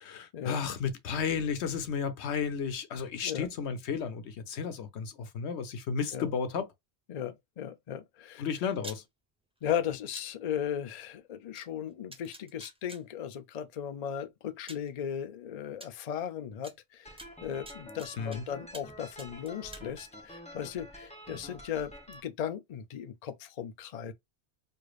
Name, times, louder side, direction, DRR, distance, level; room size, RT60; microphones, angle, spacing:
voice 1, 0.0-6.7 8.4-9.0 18.2-18.4, left 6 dB, 90° left, 1.0 m, -33 dB
voice 2, 7.1-8.4 9.6-24.1, left 9 dB, 45° left, 0.6 m, -37 dB
sound 1, 8.8-9.0 10.1-10.3 11.5-11.6 12.1-13.0 14.1-14.2 14.7-14.9 15.8-15.9 16.6-16.7 17.2-18.4 18.7-18.9 19.2-19.9, right 1 dB, 10° right, 0.4 m, -46 dB
sound 2, 17.1-22.2, equal, 5° left, 0.9 m, -48 dB
4.9 x 2.5 x 2.4 m
omnidirectional pair, 1.1 m